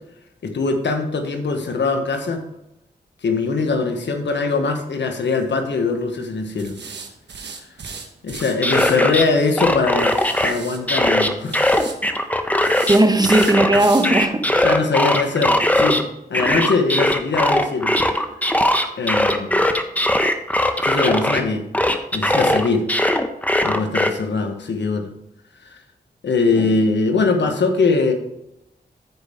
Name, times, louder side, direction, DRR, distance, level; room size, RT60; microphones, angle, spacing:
voice 1, 0.4-2.4 3.2-6.8 8.2-11.6 14.6-18.0 19.0-19.7 20.8-21.6 22.1-22.9 23.6-25.1 25.7-25.8 26.2-28.1, left 4 dB, 80° left, 5 dB, 1.3 m, -21 dB
sound 1, 5.2-5.5 6.6-9.0 10.0-10.8 11.4-11.9 12.6-14.1 14.5-14.6 15.0-15.1 15.5-15.6, right 5 dB, 80° right, 1.3 m, -35 dB
sound 2, 8.4-9.2 9.6-10.5 10.9-13.0 13.2-16.0 16.3-21.4 21.7-24.1, left 1 dB, 10° left, 1.1 m, -19 dB
voice 2, 12.9-14.7 26.6-26.8, right 1 dB, 20° right, 6 dB, 1.3 m, -17 dB
14.0 x 5.3 x 3.6 m, 0.84 s
cardioid pair, 40°, 18 cm